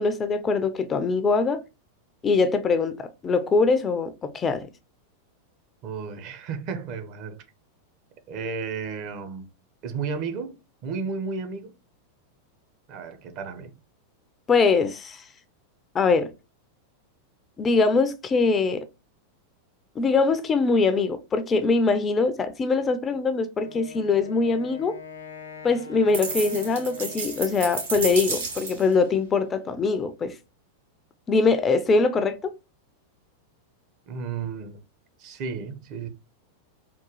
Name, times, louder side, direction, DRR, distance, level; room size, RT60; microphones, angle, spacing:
voice 1, 0.0-1.6 2.2-4.7 14.5-15.2 15.9-16.3 17.6-18.8 20.0-25.0 25.6-30.3 31.3-32.5, left 4 dB, 20° left, 0.4 m, -23 dB
voice 2, 5.8-7.4 8.3-9.5 9.8-10.6 10.8-11.7 12.9-13.7 34.1-34.8 35.2-36.1, right 5 dB, 40° right, 0.6 m, -33 dB
Wind instrument woodwind instrument, 23.5-27.8, left 5 dB, 75° left, 0.8 m, -43 dB
sound 1, 26.1-28.9, right 4 dB, 60° right, 1.8 m, -31 dB
3.6 x 2.3 x 3.0 m
figure-of-eight pair, 90°, 0 cm